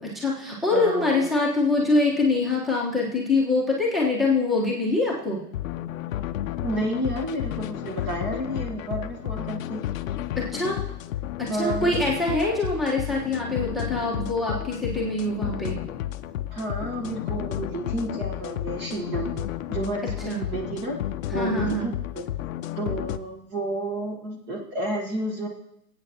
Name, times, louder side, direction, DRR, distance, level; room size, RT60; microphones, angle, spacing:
voice 1, 0.0-5.4 10.4-10.9 11.4-15.8 20.2-20.4 21.3-21.9, left 2 dB, ahead, -3 dB, 1.2 m, -24 dB
voice 2, 0.7-1.3 6.6-9.8 11.5-12.0 16.5-19.4 19.7-21.0 21.3-22.2 22.8-25.5, right 1 dB, 20° right, 2 dB, 1.2 m, -31 dB
sound 1, 5.5-23.2, left 12 dB, 55° left, 0.6 m, -32 dB
19.5 x 8.6 x 2.9 m, 0.83 s
hypercardioid pair, 145°, 50 cm